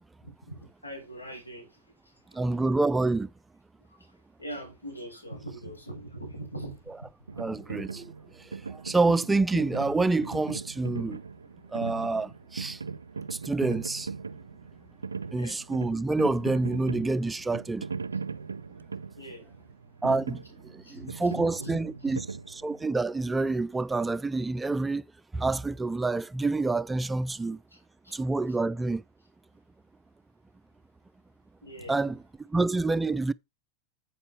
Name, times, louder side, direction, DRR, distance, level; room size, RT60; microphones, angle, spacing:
voice 1, 0.2-2.4 4.0-4.1 4.4-7.1 7.6-7.7 15.4-15.6 19.2-19.5 20.8-22.2 27.7-28.2 31.6-32.0, right 1 dB, 85° left, 5.9 m, -42 dB
voice 2, 2.3-3.3 7.4-11.2 11.7-12.8 13.3-14.1 15.3-17.9 20.0-22.2 22.6-25.0 25.3-27.6 28.1-29.0 31.9-33.3, right 3 dB, 10° right, 0.4 m, -28 dB
sound 1, 7.3-23.0, right 5 dB, 75° right, 0.5 m, -39 dB
8.1 x 7.7 x 4.6 m
figure-of-eight pair, 90°, 0 cm